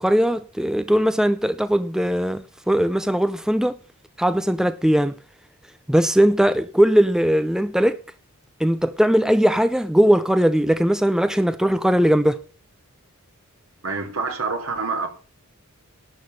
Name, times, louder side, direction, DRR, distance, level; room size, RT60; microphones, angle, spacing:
voice 1, 0.0-3.8 4.2-5.2 5.9-8.0 8.6-12.4, equal, 5° right, 0.5 m, -19 dB
voice 2, 13.8-15.1, right 4 dB, 70° right, 3.5 m, -26 dB
11.5 x 7.9 x 6.8 m
head